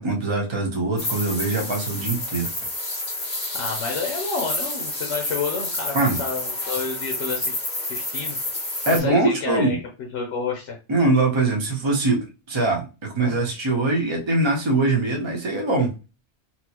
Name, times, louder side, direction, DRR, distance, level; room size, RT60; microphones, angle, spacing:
voice 1, 0.0-2.5 5.9-6.2 8.9-9.8 10.9-15.9, right 2 dB, 25° right, 0 dB, 0.8 m, -22 dB
sound 1, 1.0-9.0, left 1 dB, 40° left, 1.3 m, -29 dB
voice 2, 3.5-7.5 7.9-8.4 8.9-9.8 10.1-10.8, left 4 dB, 80° left, 1 dB, 1.1 m, -29 dB
4.2 x 2.0 x 2.9 m, 0.30 s
omnidirectional pair, 1.2 m